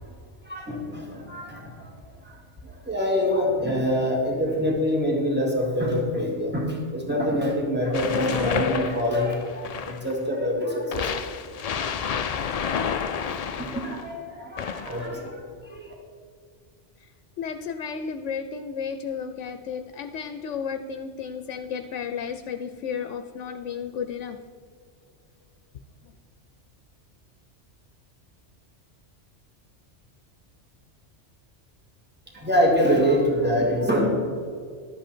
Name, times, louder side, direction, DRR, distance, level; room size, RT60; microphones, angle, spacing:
voice 1, 0.4-1.9 2.2-11.3 11.8-12.0 13.6-15.9 32.3-34.1, equal, 10° right, -2 dB, 2.2 m, -25 dB
sound 1, 7.9-10.2 10.9-14.1 14.6-15.2, left 7 dB, 55° left, 0.4 m, -29 dB
voice 2, 17.4-24.4, left 6 dB, 80° left, 9 dB, 1.0 m, -33 dB
12.5 x 8.1 x 4.4 m, 2.1 s
omnidirectional pair, 1.2 m